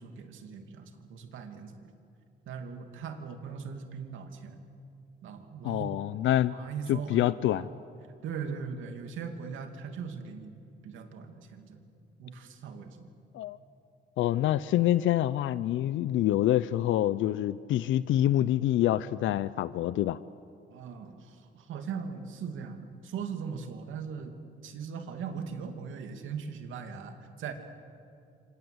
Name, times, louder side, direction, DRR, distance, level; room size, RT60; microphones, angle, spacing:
voice 1, 0.0-1.9 2.5-4.6 5.2-7.7 8.2-10.5 10.8-11.9 12.2-13.1 20.7-24.3 24.6-27.5, right 6 dB, 80° right, 5 dB, 2.7 m, -40 dB
voice 2, 5.6-6.5 6.9-7.7 13.3-13.6 14.2-20.2, left 13 dB, 80° left, 16 dB, 0.6 m, -26 dB
28.0 x 26.0 x 8.0 m, 2.5 s
cardioid pair, 90°, 20 cm